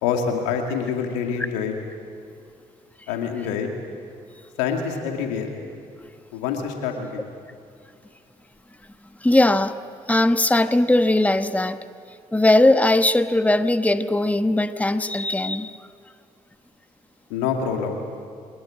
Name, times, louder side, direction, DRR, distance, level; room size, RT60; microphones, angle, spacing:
voice 1, 0.0-1.7 3.1-3.7 4.6-5.5 6.3-7.3 17.3-18.0, left 6 dB, 80° left, 3 dB, 2.4 m, -26 dB
voice 2, 9.2-9.8 10.1-11.8 12.3-15.7, left 1 dB, 10° left, 10 dB, 1.1 m, -19 dB
24.5 x 20.0 x 8.9 m, 2.4 s
hypercardioid pair, 45°, 18 cm